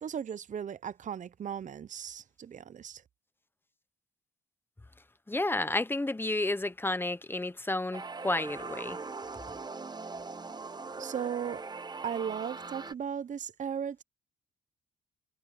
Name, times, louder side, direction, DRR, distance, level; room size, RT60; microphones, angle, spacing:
voice 1, 0.0-3.0 11.0-11.6 12.0-14.0, right 8 dB, 40° right, 0.7 m, -36 dB
voice 2, 5.3-9.0, left 2 dB, 10° left, 1.0 m, -31 dB
sound 1, 7.9-12.9, right 4 dB, 20° right, 1.0 m, -41 dB
cardioid pair, 90°, 20 cm